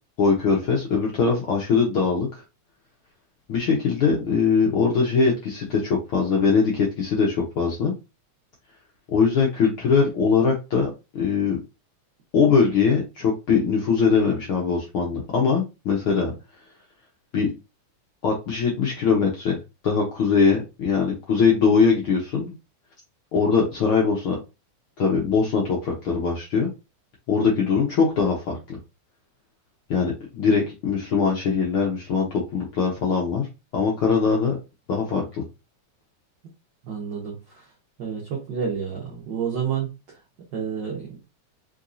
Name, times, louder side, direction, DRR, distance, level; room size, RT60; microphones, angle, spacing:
voice 1, 0.2-2.4 3.5-7.9 9.1-11.6 12.3-16.3 17.3-17.5 18.2-19.6 19.8-22.5 23.3-24.4 25.0-26.7 27.3-28.8 29.9-33.5 33.7-34.6 34.9-35.4, left 5 dB, 70° left, -2 dB, 1.3 m, -21 dB
voice 2, 36.8-37.7 38.0-40.2 40.5-41.2, right 7 dB, 75° right, -2 dB, 1.0 m, -30 dB
4.4 x 3.7 x 2.6 m, 0.26 s
omnidirectional pair, 3.5 m